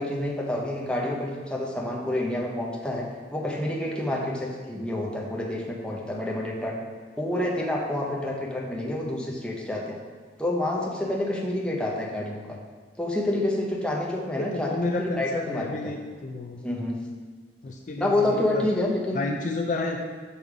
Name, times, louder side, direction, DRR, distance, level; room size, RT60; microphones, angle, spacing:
voice 1, 0.0-6.8 7.2-10.0 10.4-12.6 13.0-15.9 16.6-17.0 18.0-19.2, left 1 dB, 5° left, -2 dB, 0.8 m, -28 dB
voice 2, 14.4-16.6 17.6-18.6 19.1-20.0, left 2 dB, 45° left, 2 dB, 0.4 m, -31 dB
5.6 x 5.2 x 4.7 m, 1.5 s
head